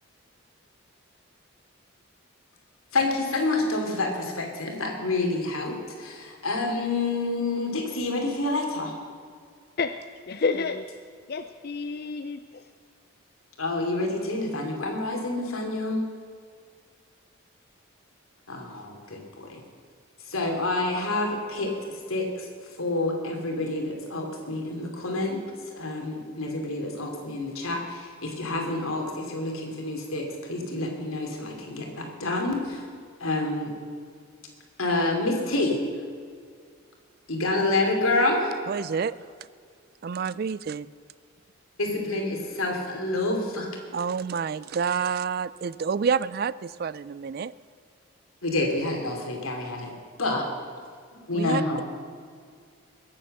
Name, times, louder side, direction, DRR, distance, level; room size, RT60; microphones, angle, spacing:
voice 1, 2.9-8.9 13.6-16.0 18.5-19.6 20.3-21.7 22.1-22.5 22.8-25.4 25.7-32.8 33.2-33.7 34.8-35.8 37.3-38.6 41.8-43.7 48.4-49.9 50.2-50.5 51.3-51.8, left 2 dB, 85° left, 2 dB, 2.8 m, -28 dB
voice 2, 10.3-10.9 11.3-12.6, left 4 dB, 50° left, 8 dB, 0.5 m, -29 dB
voice 3, 38.7-39.2 40.0-40.9 43.9-47.5 51.3-51.6, right 6 dB, 45° right, 18 dB, 0.3 m, -28 dB
22.0 x 7.8 x 6.6 m, 2.1 s
head